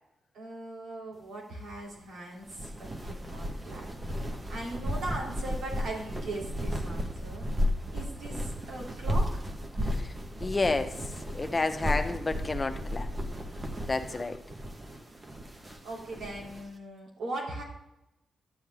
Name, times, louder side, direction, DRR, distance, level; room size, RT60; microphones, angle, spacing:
voice 1, 0.3-3.9 4.1-7.5 7.9-9.5 13.8-14.2 15.6-17.6, right 2 dB, 80° right, -3 dB, 3.1 m, -40 dB
sound 1, 2.4-16.6, equal, 30° right, 1.3 m, -34 dB
voice 2, 10.4-10.9 11.3-13.1 13.9-14.4, left 3 dB, 30° left, 8 dB, 0.9 m, -30 dB
11.0 x 7.6 x 3.5 m, 0.89 s
supercardioid pair, 55°, 0 cm